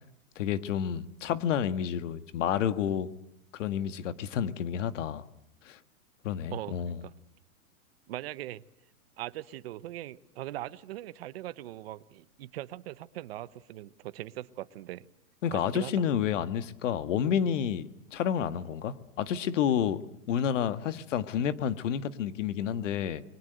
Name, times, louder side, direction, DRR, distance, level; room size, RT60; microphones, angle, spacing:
voice 1, 0.3-3.1 3.5-5.2 5.6-5.8 6.2-7.0 15.4-20.0 20.3-23.2, left 9 dB, 55° left, 11 dB, 1.6 m, -30 dB
voice 2, 6.5-7.1 8.1-8.6 9.2-15.1 15.5-16.1, right 14 dB, 45° right, 15 dB, 1.0 m, -40 dB
28.5 x 22.5 x 7.9 m, 0.78 s
hypercardioid pair, 160°, 44 cm